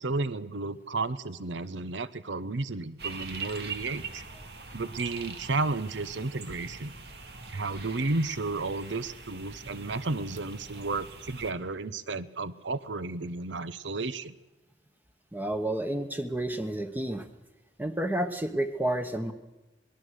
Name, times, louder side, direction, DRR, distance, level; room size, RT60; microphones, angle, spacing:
voice 1, 0.0-4.3 4.7-6.9 7.5-14.3, right 3 dB, 85° right, 16 dB, 0.9 m, -32 dB
sound 1, 3.0-11.5, right 4 dB, 60° right, 2.2 m, -43 dB
voice 2, 15.3-17.3 17.8-19.3, right 1 dB, 10° right, 8 dB, 1.0 m, -30 dB
26.5 x 20.0 x 6.5 m, 1.1 s
head